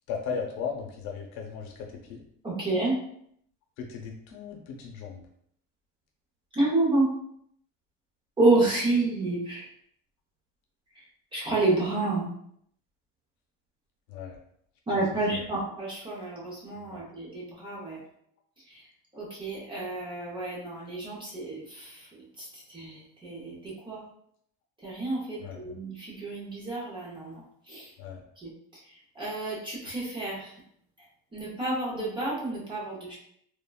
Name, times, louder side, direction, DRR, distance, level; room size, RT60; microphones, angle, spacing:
voice 1, 0.1-2.2 3.8-5.2 14.1-14.4 15.3-15.5 16.9-17.0 25.4-25.8 28.0-28.2, left 6 dB, 80° left, 0 dB, 0.8 m, -37 dB
voice 2, 2.4-2.9 6.5-7.1 8.4-9.7 11.3-12.3 14.9-18.0 18.7-18.8 19.1-22.1 22.4-24.0 24.8-27.9 28.4-28.5 29.2-30.5 31.3-33.2, right 2 dB, 15° right, -5 dB, 0.6 m, -29 dB
3.3 x 2.1 x 2.3 m, 0.70 s
cardioid pair, 160°, 33 cm